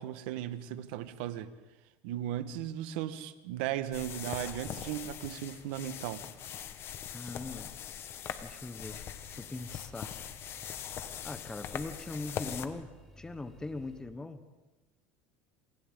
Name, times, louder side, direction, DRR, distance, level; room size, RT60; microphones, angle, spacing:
voice 1, 0.0-1.5 2.0-6.2, right 12 dB, 80° right, 1.4 m, -36 dB
sound 1, 3.9-12.7, left 9 dB, 45° left, 1.3 m, -42 dB
voice 2, 7.1-7.7 8.4-9.0 9.3-10.1 11.2-12.9 13.2-14.4, left 3 dB, 10° left, 1.3 m, -41 dB
sound 2, 8.8-14.0, left 1 dB, 5° right, 5.8 m, -55 dB
28.5 x 27.5 x 3.8 m
supercardioid pair, 125°, 6 cm